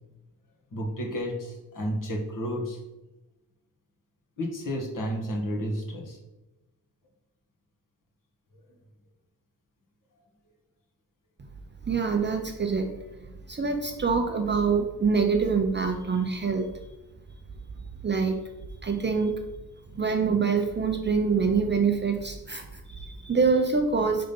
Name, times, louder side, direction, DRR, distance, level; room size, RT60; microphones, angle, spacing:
voice 1, 0.7-2.8 4.4-6.2, equal, 50° left, 0 dB, 1.6 m, -31 dB
voice 2, 11.9-12.9 13.5-16.7 18.0-18.4 18.8-19.3 19.9-24.3, right 5 dB, 25° right, 4 dB, 0.6 m, -25 dB
5.6 x 3.8 x 5.3 m, 1.0 s
cardioid pair, 125°, 41 cm